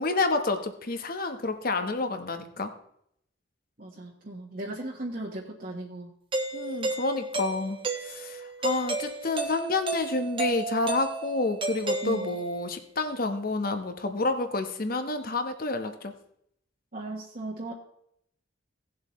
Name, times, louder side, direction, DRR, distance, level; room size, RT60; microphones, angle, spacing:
voice 1, 0.0-2.7 6.5-16.1, left 3 dB, 50° left, 7 dB, 1.1 m, -29 dB
voice 2, 3.8-6.2 6.9-7.0 12.0-12.4 16.9-17.7, right 2 dB, 45° right, -3 dB, 1.4 m, -37 dB
Doorbell, 6.3-12.6, right 3 dB, 25° right, 1.2 m, -32 dB
17.5 x 7.4 x 3.1 m, 0.72 s
head